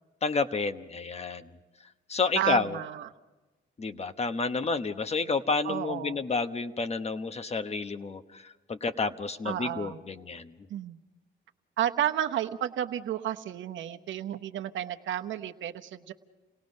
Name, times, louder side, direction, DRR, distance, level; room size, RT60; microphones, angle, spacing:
voice 1, 0.2-1.5 2.1-2.8 3.8-10.5, left 4 dB, 30° left, 10 dB, 1.1 m, -30 dB
voice 2, 2.3-3.1 5.6-6.2 9.4-10.0 10.7-11.0 11.8-16.1, right 11 dB, 75° right, 7 dB, 1.0 m, -32 dB
28.5 x 18.0 x 5.4 m, 1.1 s
cardioid pair, 90°, 20 cm